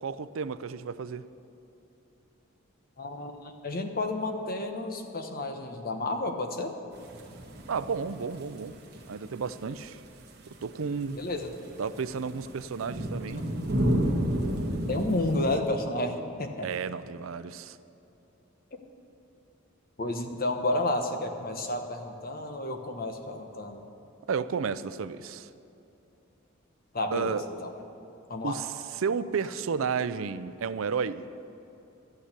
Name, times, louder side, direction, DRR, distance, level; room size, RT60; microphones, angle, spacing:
voice 1, 0.0-1.2 7.7-8.8 9.1-10.0 10.6-11.2 11.8-13.4 16.6-17.8 24.3-25.5 27.1-27.4 28.4-31.3, right 5 dB, 90° right, 14 dB, 0.5 m, -32 dB
voice 2, 3.0-6.7 11.1-11.5 14.9-16.7 20.0-23.8 26.9-27.7 28.3-28.6, left 2 dB, 45° left, 5 dB, 1.2 m, -31 dB
sound 1, 6.9-15.6, equal, 55° right, 1.6 m, -32 dB
12.5 x 9.0 x 8.3 m, 2.8 s
head